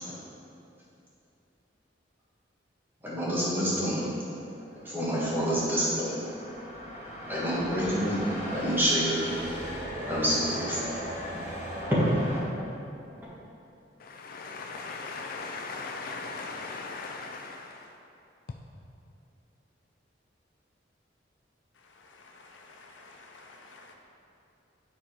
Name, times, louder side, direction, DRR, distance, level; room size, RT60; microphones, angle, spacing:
voice 1, 3.0-4.1 4.8-6.2 7.3-8.2 8.5-9.3 10.0-11.0 11.9-12.0, equal, 10° right, -8 dB, 1.8 m, -27 dB
sound 1, 4.4-12.4, equal, 40° left, 1.7 m, -38 dB
voice 2, 14.0-17.9, left 4 dB, 55° left, 2 dB, 0.4 m, -38 dB
voice 3, 22.1-23.9, left 3 dB, 85° left, 1 dB, 0.8 m, -52 dB
9.3 x 4.1 x 4.9 m, 2.8 s
head